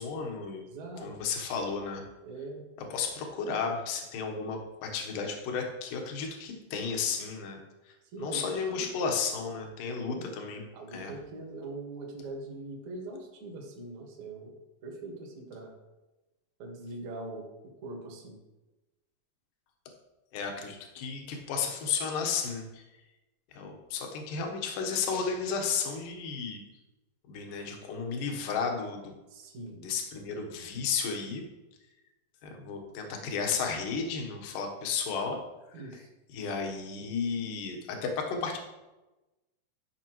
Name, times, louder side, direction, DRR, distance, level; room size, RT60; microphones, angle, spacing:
voice 1, 0.0-0.7 1.0-2.0 2.9-7.6 8.2-10.6 10.9-11.1 20.3-22.8 23.5-26.6 27.3-29.1 29.8-31.5 32.4-35.4 36.3-38.6, left 5 dB, 65° left, 3 dB, 2.4 m, -33 dB
voice 2, 0.7-1.1 2.2-2.6 8.1-8.9 9.9-10.3 10.7-14.6 14.8-15.7 16.6-17.4 17.8-18.4 29.3-29.8 35.7-36.1, right 2 dB, 55° right, 0 dB, 2.3 m, -42 dB
13.0 x 5.6 x 3.0 m, 1.1 s
omnidirectional pair, 4.7 m